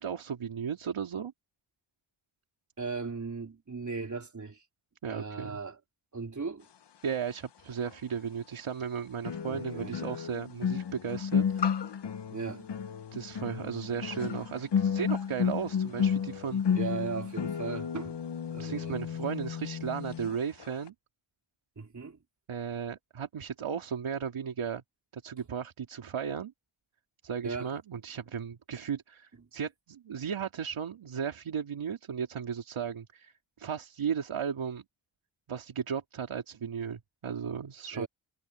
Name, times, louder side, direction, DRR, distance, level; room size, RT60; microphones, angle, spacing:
voice 1, 0.0-1.3 5.0-5.6 7.0-11.7 13.1-16.6 18.6-20.9 22.5-24.8 25.1-26.5 27.2-34.8 35.5-38.1, right 7 dB, 90° right, 2.7 m, -35 dB
voice 2, 2.8-4.6 5.0-5.8 6.1-6.7 9.5-10.0 12.3-12.7 16.7-18.2 18.5-19.0 21.8-22.2 27.4-27.7 37.9-38.1, right 4 dB, 35° right, 3.9 m, -37 dB
sound 1, 7.9-8.0 9.2-20.3 20.6-20.9, left 7 dB, 60° left, 1.0 m, -32 dB
wide cardioid pair, 135°, 48 cm